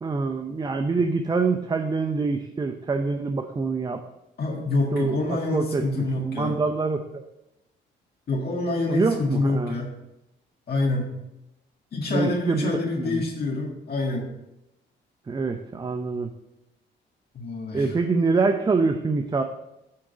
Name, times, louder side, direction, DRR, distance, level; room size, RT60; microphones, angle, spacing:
voice 1, 0.0-4.0 4.9-5.2 5.5-7.2 8.9-9.7 12.1-13.2 15.3-16.3 17.7-19.4, right 4 dB, 20° right, 6 dB, 0.5 m, -25 dB
voice 2, 4.4-6.6 8.3-9.9 10.7-11.1 11.9-14.3 17.3-17.9, left 2 dB, 50° left, -2 dB, 1.8 m, -26 dB
8.6 x 3.8 x 6.1 m, 0.89 s
cardioid pair, 90°, 20 cm